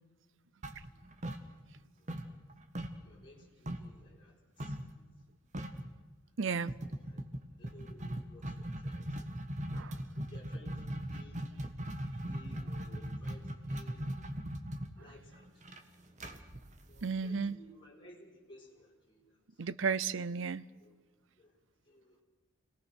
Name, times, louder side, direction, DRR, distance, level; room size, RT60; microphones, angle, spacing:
sound 1, 0.6-1.8 2.1-4.0 4.6-4.9 5.2-5.3 5.5-5.9 6.7-17.5, right 1 dB, 35° right, 1.5 m, -39 dB
voice 1, 3.0-5.1 7.0-7.2 7.6-9.3 10.1-11.5 12.3-14.1 15.0-15.8 16.9-19.4 20.8-21.0 21.4-21.5 21.9-22.2, left 1 dB, 25° left, 4.1 m, -58 dB
voice 2, 6.4-6.7 9.7-10.0 17.0-17.6 19.6-20.6, right 5 dB, 65° right, 0.6 m, -33 dB
26.5 x 18.5 x 6.4 m
head